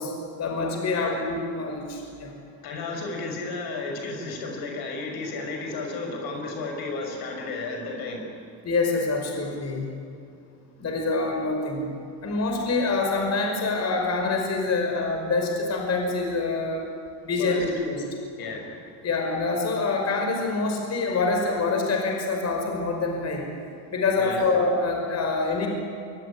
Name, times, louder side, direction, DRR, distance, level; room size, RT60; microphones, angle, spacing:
voice 1, 0.0-2.3 8.6-9.9 10.8-11.9 12.2-16.8 17.2-18.0 19.0-23.5 23.9-25.7, left 3 dB, 40° left, 2 dB, 5.6 m, -26 dB
voice 2, 2.6-8.3 17.4-17.6 18.4-18.7 24.2-24.4, left 3 dB, 65° left, 2 dB, 5.9 m, -33 dB
23.5 x 23.0 x 9.7 m, 2.4 s
cardioid pair, 130°, 40 cm